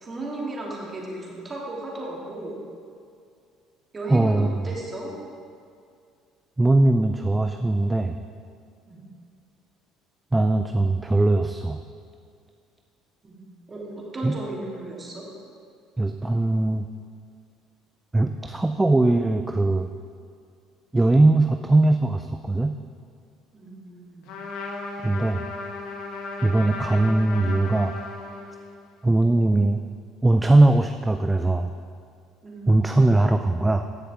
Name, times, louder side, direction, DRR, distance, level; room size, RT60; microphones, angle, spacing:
voice 1, 0.0-2.6 3.9-5.2 8.9-9.0 13.2-13.4 13.7-15.3 23.5-24.3 32.4-33.0, right 2 dB, 30° right, -3 dB, 2.8 m, -35 dB
voice 2, 4.1-4.6 6.6-8.1 10.3-11.8 14.2-14.4 16.0-16.9 18.1-19.9 20.9-22.8 25.0-25.4 26.4-27.9 29.0-29.8 30.2-31.7 32.7-33.9, right 2 dB, 15° right, 7 dB, 0.4 m, -20 dB
Trumpet, 24.2-28.8, left 3 dB, 75° left, 1.5 m, -35 dB
15.0 x 6.8 x 3.7 m, 2.3 s
hypercardioid pair, 70°, 0 cm